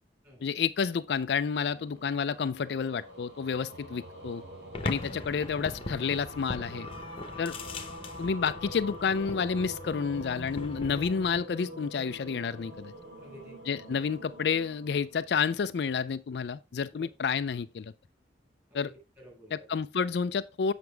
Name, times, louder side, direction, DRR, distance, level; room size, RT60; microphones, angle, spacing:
voice 1, 0.4-4.4 4.8-6.9 7.4-7.6 8.2-12.9 13.7-17.9 18.7-18.9 19.5-20.7, left 6 dB, 65° left, 0.4 m, -30 dB
sound 1, 1.4-15.9, equal, 85° right, 3.7 m, -46 dB
sound 2, 4.7-11.4, left 2 dB, 30° left, 0.9 m, -40 dB
voice 2, 13.2-13.9 16.9-17.0 18.7-19.7, equal, 15° right, 4.7 m, -52 dB
7.9 x 5.9 x 3.3 m
head